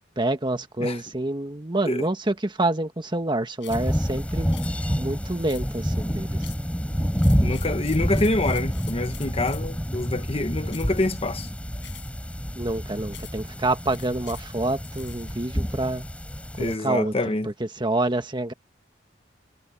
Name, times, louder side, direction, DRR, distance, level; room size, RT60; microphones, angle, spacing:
voice 1, 0.2-4.5 4.9-6.4 12.5-16.1 16.6-17.1 17.4-18.5, right 2 dB, 25° right, 1.5 m, -27 dB
sound 1, 3.6-3.9 4.5-4.7 5.5-5.9 6.4-6.7 7.1-9.8 10.7-11.0 11.8-12.2 13.1-13.5 13.9-15.3, left 14 dB, 75° left, 6.7 m, -46 dB
sound 2, 3.7-16.8, equal, 5° left, 4.2 m, -28 dB
voice 2, 7.4-11.5 16.6-17.5, left 2 dB, 30° left, 1.2 m, -26 dB
head